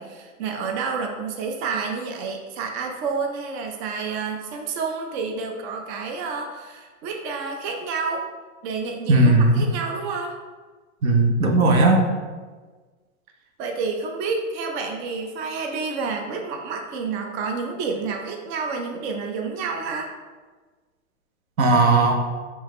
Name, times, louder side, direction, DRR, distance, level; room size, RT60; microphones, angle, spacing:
voice 1, 0.0-8.2 8.6-10.4 13.6-20.1, right 4 dB, 50° right, 3 dB, 0.7 m, -29 dB
voice 2, 9.1-9.6 11.0-12.0 21.6-22.1, right 2 dB, 80° right, 2 dB, 0.9 m, -17 dB
4.7 x 3.5 x 3.1 m, 1.4 s
hypercardioid pair, 120°, 41 cm